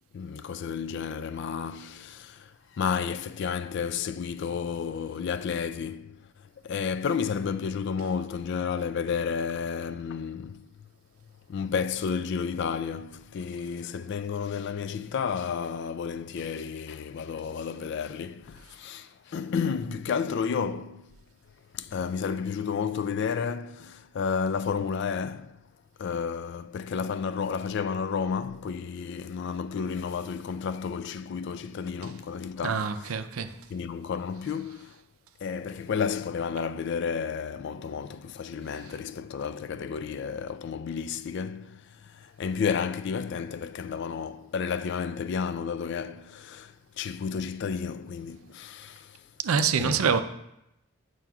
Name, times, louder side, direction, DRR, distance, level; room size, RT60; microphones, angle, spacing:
voice 1, 0.1-6.3 6.6-10.7 11.5-21.2 21.7-25.6 26.0-33.1 33.7-35.0 35.4-49.2 49.5-50.2, left 6 dB, 55° left, 0.3 m, -32 dB
voice 2, 32.6-33.5 49.4-50.2, right 6 dB, 80° right, 0.5 m, -25 dB
9.0 x 5.9 x 2.3 m
head